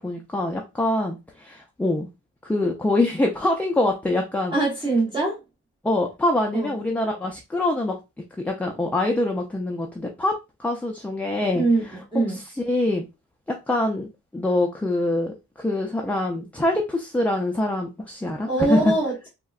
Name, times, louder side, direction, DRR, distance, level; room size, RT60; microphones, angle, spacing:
voice 1, 0.0-2.1 2.4-4.6 5.8-8.0 8.4-10.3 10.6-11.6 12.3-13.0 13.5-18.9, left 1 dB, 5° left, 1 dB, 0.3 m, -24 dB
voice 2, 4.5-5.4 6.5-6.7 11.5-12.4 18.5-19.3, right 2 dB, 15° right, -5 dB, 0.8 m, -23 dB
3.6 x 2.1 x 2.3 m, 0.25 s
wide cardioid pair, 150°, 30 cm